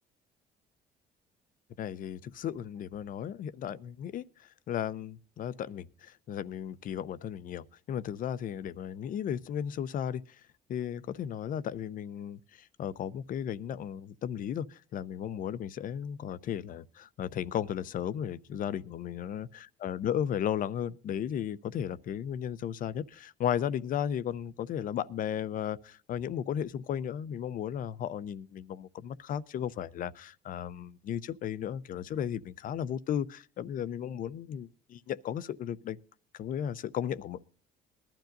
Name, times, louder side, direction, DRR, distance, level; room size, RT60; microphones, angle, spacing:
voice 1, 1.8-10.4 10.7-36.0 36.3-37.4, left 9 dB, 55° left, 0.6 m, -35 dB
20.5 x 12.0 x 2.6 m
cardioid pair, 110°, 17 cm